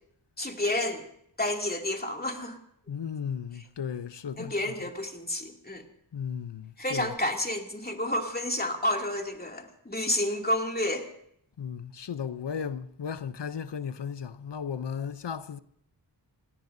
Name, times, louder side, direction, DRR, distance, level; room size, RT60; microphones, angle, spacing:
voice 1, 0.4-1.1 1.4-2.6 4.4-5.8 6.8-11.1, left 1 dB, 20° left, 2.6 m, -30 dB
voice 2, 2.9-4.7 6.1-7.1 11.6-15.6, left 7 dB, 75° left, 0.7 m, -35 dB
29.5 x 17.5 x 2.7 m
wide cardioid pair, 45°, 42 cm